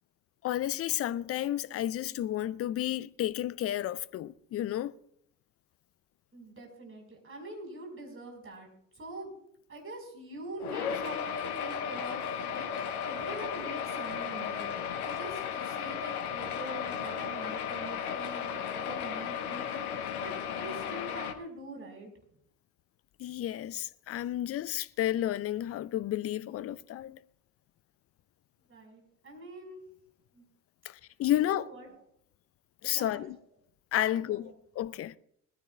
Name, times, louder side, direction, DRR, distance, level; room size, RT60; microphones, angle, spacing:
voice 1, 0.4-5.0 23.2-27.2 30.8-31.7 32.8-33.4 33.9-35.2, left 12 dB, 35° left, 0.6 m, -32 dB
voice 2, 6.3-8.7 8.9-9.3 9.7-22.1 28.7-29.8 30.3-30.5 31.3-31.9 32.9-33.3 34.1-34.5, right 2 dB, 30° right, 5.0 m, -44 dB
sound 1, 10.6-21.3, left 8 dB, 75° left, 1.2 m, -35 dB
21.5 x 14.5 x 2.4 m
figure-of-eight pair, 55°, 44 cm